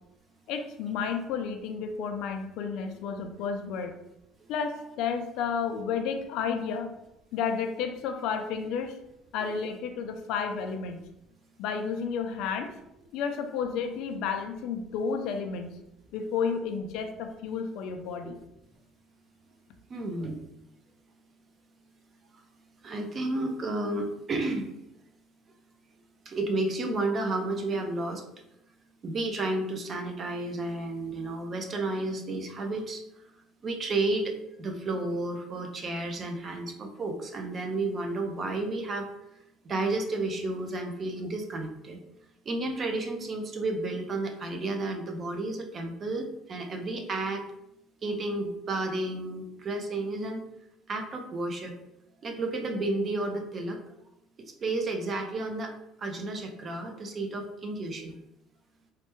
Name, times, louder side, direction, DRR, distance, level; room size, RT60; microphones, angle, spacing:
voice 1, 0.5-3.9 4.5-6.9 7.3-9.0 9.3-11.0 11.6-12.7 13.1-15.7 16.1-18.4, left 6 dB, 70° left, 6 dB, 0.4 m, -31 dB
voice 2, 19.9-20.4 22.8-24.7 26.3-28.2 29.0-33.0 33.6-34.3 34.6-39.1 39.6-42.0 42.5-47.4 48.0-50.4 50.9-51.7 52.2-53.8 54.4-55.7 56.0-58.1, right 2 dB, 30° right, 3 dB, 0.4 m, -32 dB
3.1 x 2.1 x 3.0 m, 0.83 s
cardioid pair, 165°, 0 cm